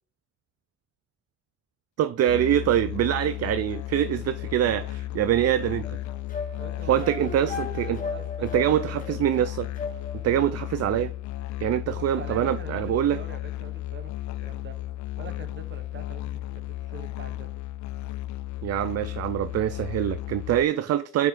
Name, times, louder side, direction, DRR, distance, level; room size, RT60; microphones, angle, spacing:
voice 1, 2.0-5.8 6.9-8.0 8.5-9.7 10.2-11.1 11.6-13.2 18.6-21.3, right 11 dB, 55° right, 0.5 m, -24 dB
Musical instrument, 2.3-20.6, left 14 dB, 70° left, 0.6 m, -34 dB
sound 1, 5.8-10.4, left 4 dB, 25° left, 1.9 m, -36 dB
voice 2, 6.6-7.5 7.9-9.0 11.9-14.8 15.2-17.5, right 5 dB, 40° right, 1.2 m, -44 dB
7.0 x 5.9 x 3.8 m
cardioid pair, 90°, 30 cm